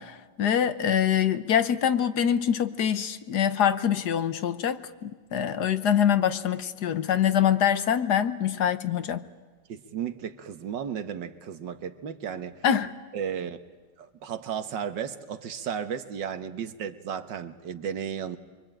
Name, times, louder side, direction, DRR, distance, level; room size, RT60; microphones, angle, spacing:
voice 1, 0.0-9.2 12.6-12.9, left 9 dB, 65° left, 1.6 m, -24 dB
voice 2, 9.7-12.6 13.1-13.6 14.0-18.4, right 8 dB, 80° right, 1.9 m, -34 dB
24.5 x 24.0 x 9.0 m
omnidirectional pair, 1.9 m